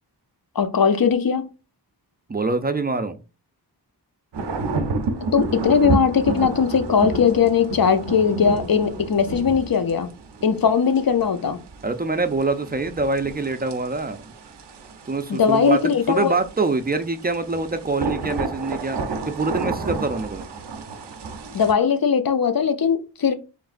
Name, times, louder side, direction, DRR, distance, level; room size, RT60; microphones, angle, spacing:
voice 1, 0.6-1.5 5.3-10.1 10.4-11.6 15.3-16.4 21.5-23.3, left 6 dB, 55° left, 0.6 m, -19 dB
voice 2, 2.3-3.2 11.8-14.3 15.1-19.0 19.3-20.5, right 3 dB, 25° right, 0.4 m, -25 dB
sound 1, 4.3-21.7, right 3 dB, 90° right, 0.6 m, -31 dB
4.9 x 3.2 x 2.5 m
wide cardioid pair, 80°, 41 cm